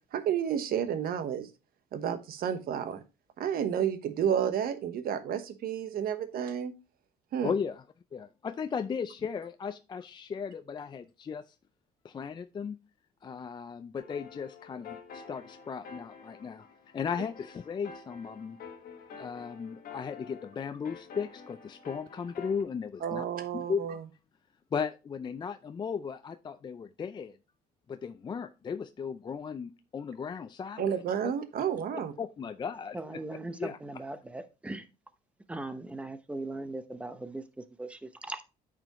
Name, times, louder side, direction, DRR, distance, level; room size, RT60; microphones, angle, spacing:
voice 1, 0.1-1.5 1.9-3.0 3.4-6.7 7.3-7.5 23.0-24.0 30.8-32.1, right 8 dB, 60° right, 11 dB, 1.0 m, -31 dB
voice 2, 7.4-7.8 8.1-11.6 12.0-12.8 13.2-16.7 16.9-18.6 19.0-23.3 23.5-23.8 24.7-27.4 27.9-31.0 31.2-31.3 32.2-33.0 33.6-33.8, left 6 dB, 25° left, 10 dB, 0.4 m, -36 dB
sound 1, 14.0-22.6, left 6 dB, 60° left, 1.5 m, -49 dB
voice 3, 32.9-34.9 35.5-38.4, right 2 dB, 5° right, 10 dB, 0.8 m, -39 dB
8.9 x 5.1 x 3.0 m, 0.29 s
cardioid pair, 110°, 17 cm